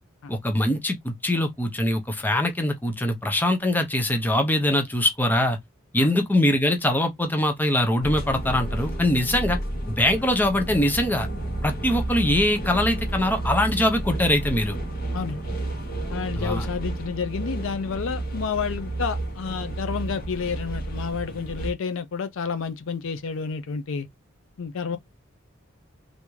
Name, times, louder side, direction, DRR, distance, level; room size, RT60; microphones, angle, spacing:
voice 1, 0.3-5.6 5.9-9.6 9.9-11.3 11.6-14.8 16.4-16.7, left 1 dB, 10° left, 0.6 m, -23 dB
sound 1, 8.0-21.7, right 1 dB, 45° left, 1.1 m, -31 dB
voice 2, 16.1-24.1 24.6-25.0, left 6 dB, 65° left, 0.4 m, -30 dB
3.4 x 2.6 x 3.0 m
head